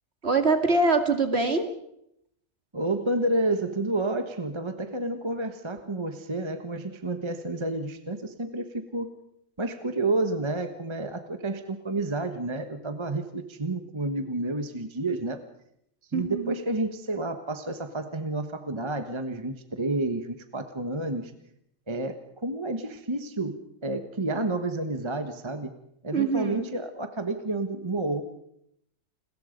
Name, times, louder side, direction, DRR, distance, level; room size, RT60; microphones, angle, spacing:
voice 1, 0.2-1.7 16.1-16.6 26.1-26.7, right 3 dB, 50° right, 6 dB, 2.7 m, -24 dB
voice 2, 2.7-9.1 9.6-15.4 16.1-21.3 21.9-25.7 26.0-28.2, right 2 dB, 20° right, 8 dB, 1.3 m, -30 dB
30.0 x 21.5 x 5.3 m, 0.75 s
omnidirectional pair, 1.4 m